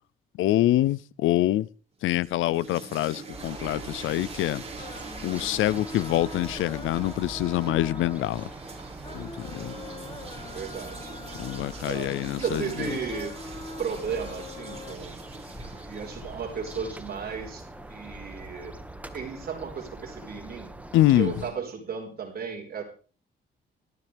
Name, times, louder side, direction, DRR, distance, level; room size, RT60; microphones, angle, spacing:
voice 1, 0.4-1.7 2.0-4.6 5.2-8.5 9.1-9.7 11.4-12.9 20.9-21.3, left 14 dB, 80° left, 0.6 m, -25 dB
sound 1, 2.0-18.0, right 4 dB, 30° right, 6.0 m, -44 dB
sound 2, 3.3-21.5, right 1 dB, 5° right, 1.7 m, -43 dB
sound 3, 4.8-15.0, left 3 dB, 30° left, 2.4 m, -44 dB
voice 2, 9.6-11.1 11.8-13.4 13.8-15.1 15.9-17.6 17.9-18.7 19.1-20.7 21.2-22.8, right 6 dB, 50° right, 4.6 m, -35 dB
18.0 x 14.0 x 3.5 m
cardioid pair, 90°, 20 cm